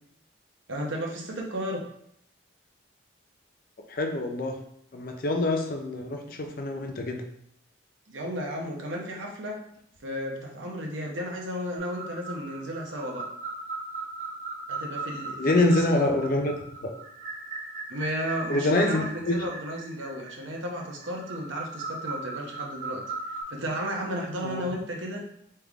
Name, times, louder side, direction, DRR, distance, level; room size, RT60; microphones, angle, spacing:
voice 1, 0.7-1.9 8.1-9.6 10.0-13.3 14.7-16.0 17.9-23.0 23.5-25.2, equal, 75° right, -1 dB, 0.9 m, -33 dB
voice 2, 3.9-4.5 4.9-7.2 15.4-16.5 16.8-16.9 18.5-19.5 24.4-24.6, left 2 dB, 45° left, 3 dB, 0.5 m, -26 dB
sound 1, 11.8-23.4, right 3 dB, 35° right, 0.9 m, -38 dB
3.5 x 3.4 x 3.5 m, 0.72 s
head